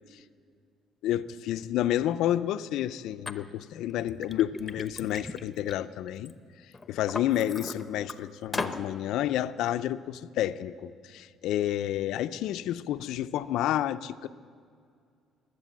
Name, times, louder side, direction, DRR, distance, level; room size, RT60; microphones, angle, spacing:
voice 1, 1.0-6.3 6.9-14.3, left 12 dB, 75° left, 0.5 m, -30 dB
Liquid, 3.3-3.4 3.9-6.3 6.7-8.1 8.5-8.8, left 3 dB, 20° left, 0.9 m, -37 dB
21.5 x 8.3 x 7.3 m
cardioid pair, 85°, 0 cm